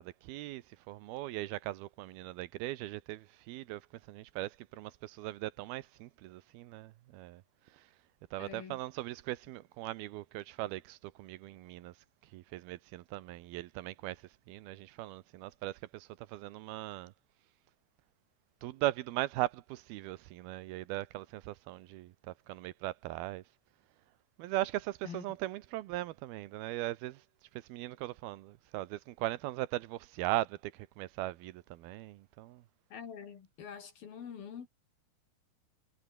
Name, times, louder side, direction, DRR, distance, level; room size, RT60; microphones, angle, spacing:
voice 1, 0.0-7.4 7.7-7.9 8.3-11.9 12.3-17.1 18.6-23.4 24.4-27.2 27.5-32.6, right 16 dB, 75° right, 2.3 m, -39 dB
voice 2, 8.4-8.8 25.0-25.2 32.9-34.7, left 7 dB, 55° left, 4.3 m, -45 dB
omnidirectional pair, 5.4 m